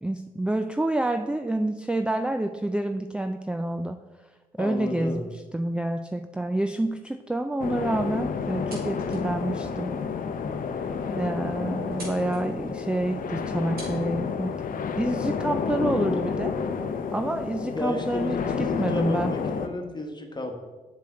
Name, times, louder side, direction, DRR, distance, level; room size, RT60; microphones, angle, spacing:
voice 1, 0.0-4.0 4.6-10.0 11.1-14.6 15.0-16.5 17.1-19.3, right 1 dB, 5° right, 7 dB, 0.3 m, -28 dB
voice 2, 4.6-5.3 17.7-20.5, left 2 dB, 30° left, 4 dB, 1.3 m, -33 dB
sound 1, 7.6-19.7, left 6 dB, 60° left, 0.6 m, -30 dB
sound 2, 8.4-9.3 9.8-9.9 10.5-10.6 10.9-11.0 11.2-11.6 11.9-12.4 13.3-13.4 13.8-14.0, right 1 dB, 75° right, 2.4 m, -44 dB
7.4 x 6.1 x 3.7 m, 1.2 s
cardioid pair, 60°, 16 cm